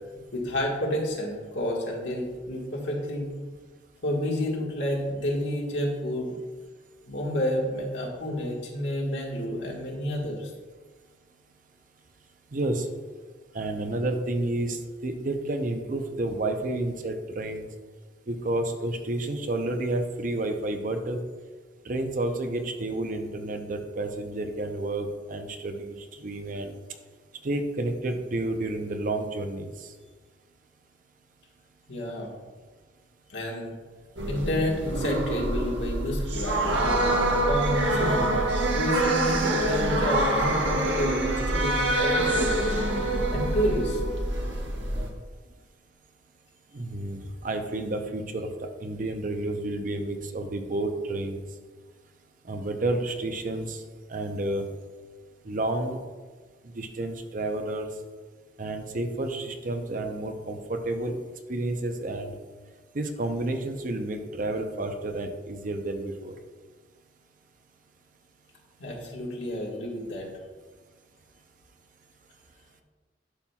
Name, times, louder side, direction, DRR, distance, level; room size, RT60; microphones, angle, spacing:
voice 1, 0.3-3.3 4.0-6.4 7.1-10.5 31.9-32.3 33.3-33.7 34.2-38.3 38.7-42.7 43.3-44.0 68.8-70.3, left 1 dB, 80° left, -2 dB, 1.7 m, -30 dB
voice 2, 12.5-12.9 13.5-17.6 18.3-21.2 21.9-26.7 27.4-29.7 46.7-48.5 48.8-51.4 52.5-53.8 54.1-54.7 55.4-56.0 56.7-57.9 58.6-61.2 61.5-62.4 62.9-66.4, right 2 dB, 45° right, 6 dB, 0.6 m, -30 dB
sound 1, 34.2-45.1, right 1 dB, 80° right, 1.0 m, -26 dB
11.5 x 5.7 x 2.3 m, 1.4 s
head